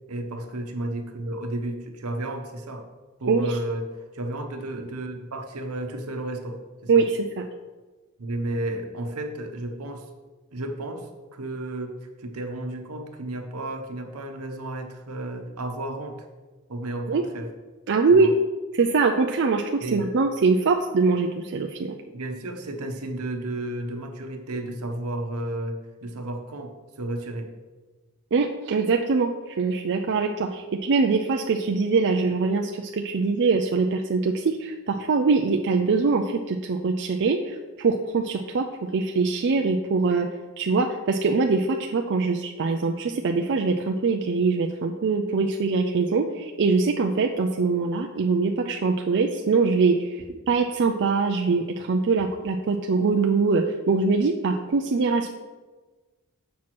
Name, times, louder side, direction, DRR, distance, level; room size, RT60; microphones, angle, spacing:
voice 1, 0.1-2.9 3.2-7.0 8.2-10.1 10.5-16.3 16.7-17.5 18.1-18.3 19.8-20.1 22.1-27.5, right 1 dB, 80° right, 5 dB, 1.0 m, -33 dB
voice 2, 17.9-18.3 18.8-22.0 28.3-29.3 29.6-38.6 38.9-40.3 40.6-50.1 50.5-55.3, right 4 dB, 55° right, 3 dB, 0.4 m, -23 dB
7.2 x 4.6 x 6.0 m, 1.3 s
head